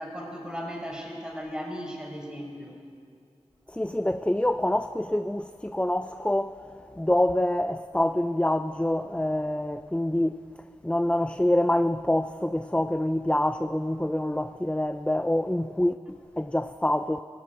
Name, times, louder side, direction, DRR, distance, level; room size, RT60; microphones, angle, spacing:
voice 1, 0.0-2.8, equal, 5° right, 5.4 m, -36 dB
voice 2, 3.7-10.4 10.8-17.2, left 1 dB, 10° left, 0.5 m, -26 dB
18.0 x 17.0 x 9.0 m
wide cardioid pair, 40°, 12 cm